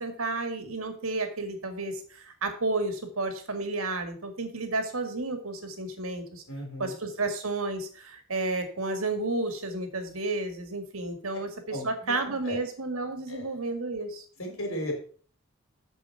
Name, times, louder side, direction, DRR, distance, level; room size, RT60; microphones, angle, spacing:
voice 1, 0.0-6.4 6.8-14.2, right 2 dB, 80° right, 7 dB, 2.0 m, -32 dB
voice 2, 6.5-6.9 11.7-12.6 13.3-13.5 14.4-15.0, equal, 80° left, 2 dB, 4.0 m, -36 dB
8.1 x 7.0 x 5.9 m, 0.44 s
head